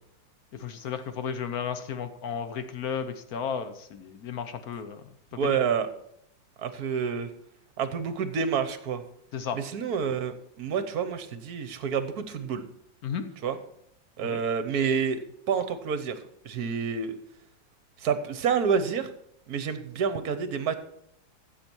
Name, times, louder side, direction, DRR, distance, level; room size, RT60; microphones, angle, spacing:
voice 1, 0.5-5.0 5.4-5.6 9.3-9.6 13.0-13.3 14.3-14.4, left 7 dB, 60° left, 10 dB, 1.2 m, -33 dB
voice 2, 5.3-5.9 6.6-7.3 7.8-9.0 9.5-12.6 13.4-13.6 14.2-16.2 16.4-17.2 18.0-19.1 19.5-20.8, right 6 dB, 60° right, 10 dB, 1.3 m, -28 dB
15.0 x 7.2 x 4.6 m, 0.73 s
omnidirectional pair, 2.0 m